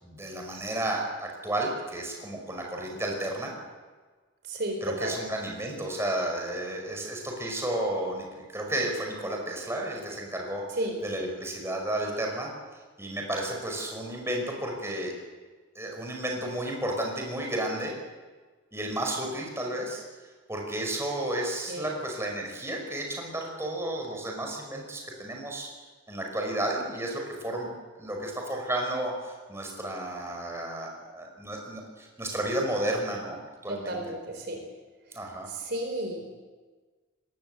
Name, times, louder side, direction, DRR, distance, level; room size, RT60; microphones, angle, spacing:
voice 1, 0.0-3.5 4.8-10.6 11.0-12.5 13.0-15.1 15.7-18.0 18.7-20.0 20.5-25.7 26.1-27.7 28.0-34.0 35.1-35.5, right 1 dB, 15° right, 0 dB, 5.5 m, -32 dB
voice 2, 4.4-5.2 10.8-11.0 21.7-21.9 33.7-34.6 35.5-36.4, right 1 dB, 55° right, 4 dB, 4.3 m, -33 dB
24.0 x 20.0 x 8.0 m, 1.4 s
head